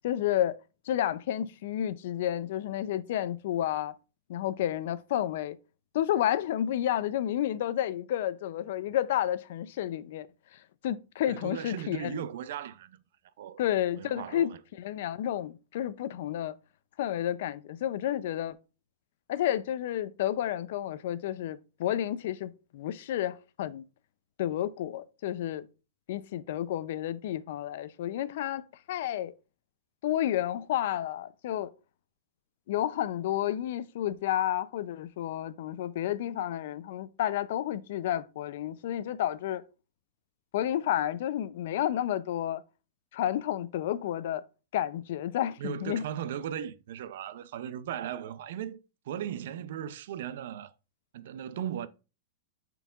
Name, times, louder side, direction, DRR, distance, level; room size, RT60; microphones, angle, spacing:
voice 1, 0.0-0.6 0.9-3.9 4.3-5.6 5.9-12.2 13.6-16.6 17.0-18.6 19.3-23.8 24.4-25.7 26.1-29.3 30.0-31.7 32.7-39.6 40.5-42.6 43.1-44.4 44.7-46.1, left 11 dB, 60° left, 0.4 m, -31 dB
voice 2, 11.3-13.0 13.4-13.6 14.0-14.6 45.6-48.8 49.1-50.7 51.1-51.9, right 10 dB, 60° right, 0.5 m, -37 dB
8.9 x 4.5 x 2.4 m
supercardioid pair, 165°, 0 cm